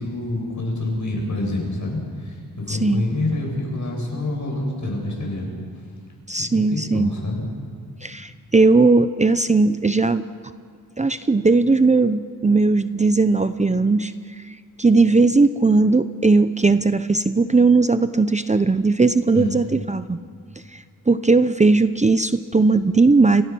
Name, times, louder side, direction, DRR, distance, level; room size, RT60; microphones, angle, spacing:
voice 1, 0.0-5.5 6.4-7.4 19.3-19.6, left 2 dB, 55° left, 0 dB, 7.9 m, -27 dB
voice 2, 2.7-3.0 6.3-7.1 8.0-10.2 11.0-14.1 14.5-20.2 20.7-23.4, right 3 dB, 20° right, 11 dB, 0.6 m, -18 dB
30.0 x 24.0 x 6.2 m, 2.1 s
wide cardioid pair, 105°, 34 cm